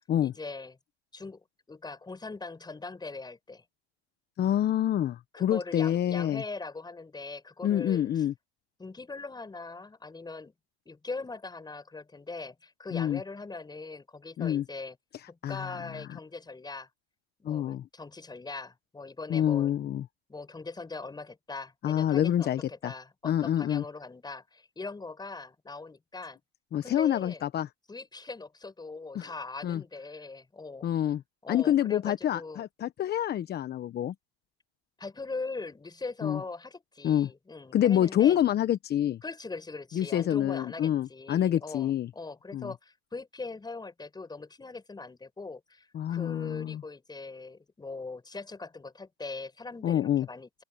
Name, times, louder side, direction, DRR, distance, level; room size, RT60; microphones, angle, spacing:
voice 1, 0.2-0.8 1.1-1.4 1.7-3.6 5.3-8.1 8.8-10.5 10.9-15.0 15.3-16.9 17.4-19.7 20.3-26.4 26.8-27.4 27.9-30.9 31.4-32.6 35.0-38.4 39.2-50.6, left 3 dB, 15° left, 7.2 m, -41 dB
voice 2, 4.4-6.4 7.6-8.3 12.9-13.2 14.4-14.6 15.4-15.7 17.4-17.8 19.3-20.0 21.8-22.9 23.2-23.8 26.7-27.7 29.1-29.3 29.6-29.8 30.8-31.2 31.5-34.1 36.2-36.4 37.0-37.3 37.7-39.2 39.9-42.1 42.5-42.7 45.9-46.8 49.8-50.3, left 11 dB, 30° left, 1.0 m, -27 dB
open air
supercardioid pair, 115°, 32 cm